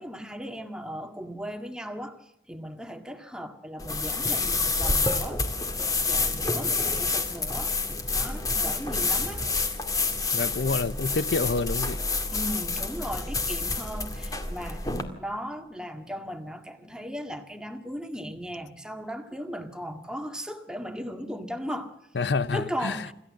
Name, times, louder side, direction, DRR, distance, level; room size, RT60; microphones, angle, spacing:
voice 1, 0.0-7.8 8.1-9.5 9.9-10.1 12.3-14.8 15.1-22.0 22.5-23.1, equal, 5° right, 1.8 m, -37 dB
sound 1, 3.8-15.0, left 3 dB, 20° left, 2.1 m, -28 dB
voice 2, 10.3-12.0 22.1-23.0, left 4 dB, 85° left, 0.7 m, -27 dB
27.0 x 14.0 x 7.5 m
head